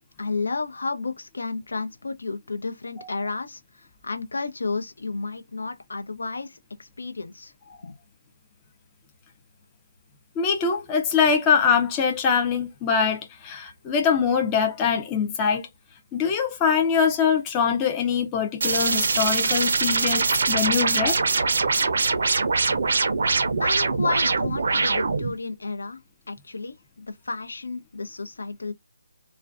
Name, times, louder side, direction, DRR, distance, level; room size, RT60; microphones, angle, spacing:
voice 1, 0.2-3.6 4.0-6.6 7.0-7.5 7.8-7.9 23.6-26.0 26.3-26.7 27.1-28.7, left 3 dB, 80° left, 0.6 m, -31 dB
voice 2, 10.4-15.7 16.1-21.2, left 6 dB, 15° left, 0.4 m, -23 dB
sound 1, 18.6-25.3, right 4 dB, 60° right, 0.5 m, -23 dB
2.4 x 2.1 x 2.4 m
hypercardioid pair, 165°, 0 cm